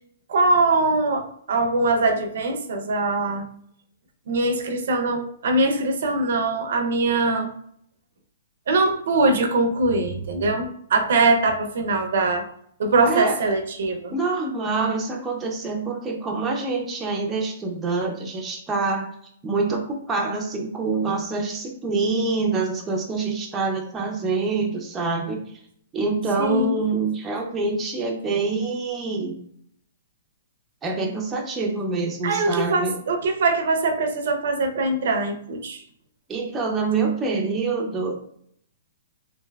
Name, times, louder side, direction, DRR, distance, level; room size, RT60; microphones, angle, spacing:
voice 1, 0.3-3.5 4.3-7.5 8.7-12.4 12.8-14.1 26.4-26.7 32.2-35.8, right 2 dB, 65° right, 5 dB, 0.5 m, -22 dB
voice 2, 13.0-13.4 14.1-19.1 19.4-25.4 25.9-29.4 30.8-33.0 36.3-38.1, right 4 dB, 15° right, 0 dB, 0.5 m, -26 dB
3.2 x 2.5 x 2.3 m, 0.67 s
hypercardioid pair, 155°, 0 cm